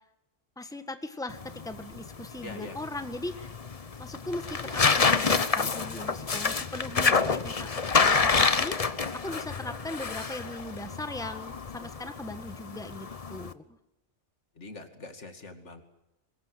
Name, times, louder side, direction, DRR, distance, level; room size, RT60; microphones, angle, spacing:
voice 1, 0.6-3.3 4.0-7.7 8.0-13.8, left 2 dB, 5° left, 8 dB, 1.6 m, -39 dB
sound 1, 1.3-13.5, left 5 dB, 35° left, 0.9 m, -28 dB
voice 2, 2.4-2.8 14.5-15.8, left 2 dB, 75° left, 6 dB, 2.7 m, -43 dB
24.0 x 21.0 x 7.8 m, 0.89 s
omnidirectional pair, 1.2 m